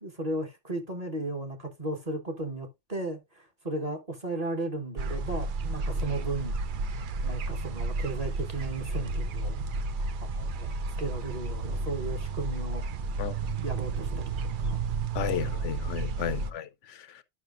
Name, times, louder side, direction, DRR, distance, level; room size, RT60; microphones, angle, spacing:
voice 1, 0.0-6.6 7.2-9.6 10.2-10.7 11.0-12.9 13.6-14.3 14.6-14.8 15.3-15.7 16.3-16.5, right 2 dB, 30° right, 1.1 m, -35 dB
sound 1, 5.0-16.5, right 3 dB, 60° right, 0.5 m, -32 dB
voice 2, 15.1-17.2, left 10 dB, 75° left, 0.9 m, -33 dB
11.0 x 5.6 x 2.4 m
omnidirectional pair, 1.3 m